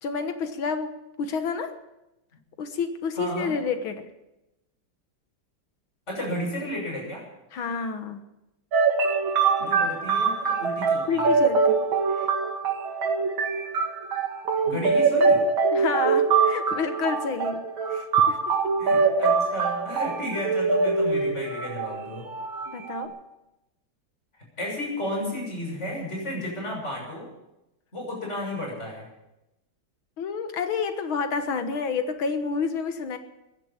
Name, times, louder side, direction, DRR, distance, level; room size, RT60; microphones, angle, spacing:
voice 1, 0.0-1.8 2.6-4.1 7.5-8.2 9.6-9.7 11.1-12.3 15.7-18.6 22.7-23.2 30.2-33.2, left 5 dB, 85° left, 8 dB, 2.2 m, -30 dB
voice 2, 3.2-3.5 6.1-7.3 9.6-11.4 14.6-15.4 18.8-22.3 24.6-27.3 27.9-29.1, left 1 dB, 35° left, -1 dB, 7.0 m, -33 dB
sound 1, 8.7-23.1, right 4 dB, 80° right, 2.9 m, -23 dB
15.5 x 11.0 x 8.7 m, 0.94 s
omnidirectional pair, 2.2 m